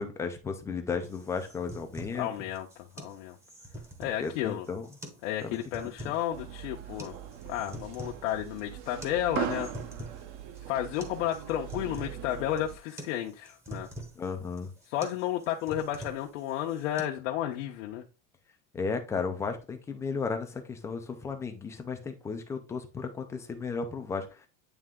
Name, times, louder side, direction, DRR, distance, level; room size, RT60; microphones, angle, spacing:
voice 1, 0.0-2.3 4.2-4.9 5.4-5.6 6.0-6.1 14.2-14.7 18.7-24.5, left 5 dB, 10° left, 0.3 m, -34 dB
sound 1, 1.0-17.0, equal, 10° right, 0.8 m, -46 dB
voice 2, 2.1-3.4 4.0-4.7 5.2-7.2 7.5-9.7 10.7-13.9 14.9-18.0, left 11 dB, 80° left, 0.9 m, -32 dB
sound 2, 6.3-12.8, right 9 dB, 45° right, 0.9 m, -40 dB
9.1 x 3.3 x 3.6 m
cardioid pair, 170°, 37 cm